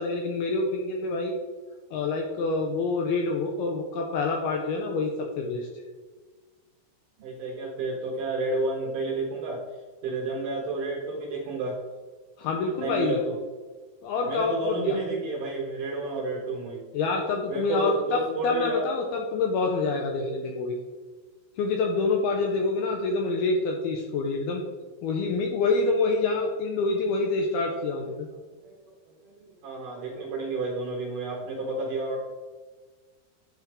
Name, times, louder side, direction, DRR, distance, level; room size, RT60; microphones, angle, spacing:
voice 1, 0.0-1.3 1.9-5.7 12.4-13.2 14.0-15.0 16.9-20.8 21.6-24.6 25.0-28.2, left 3 dB, 90° left, 2 dB, 2.3 m, -27 dB
voice 2, 7.2-9.6 10.0-11.8 12.8-13.4 14.3-16.8 17.5-18.8 28.6-28.9 29.2-32.2, right 2 dB, 65° right, -2 dB, 2.4 m, -31 dB
11.0 x 4.4 x 3.5 m, 1.4 s
omnidirectional pair, 5.1 m